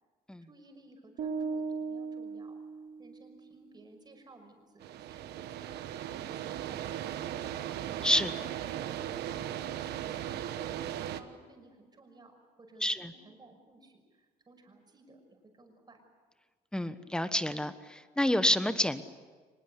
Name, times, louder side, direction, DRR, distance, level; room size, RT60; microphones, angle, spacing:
voice 1, 0.5-2.5 3.0-7.7 10.7-16.0, right 2 dB, 25° right, 4 dB, 5.9 m, -57 dB
sound 1, 1.2-3.4, right 4 dB, 55° right, 2.3 m, -37 dB
sound 2, 4.8-11.2, right 11 dB, 75° right, 1.3 m, -37 dB
voice 2, 12.8-13.1 16.7-19.0, left 1 dB, 5° left, 11 dB, 1.3 m, -28 dB
24.5 x 21.0 x 8.3 m, 1.5 s
cardioid pair, 110°, 17 cm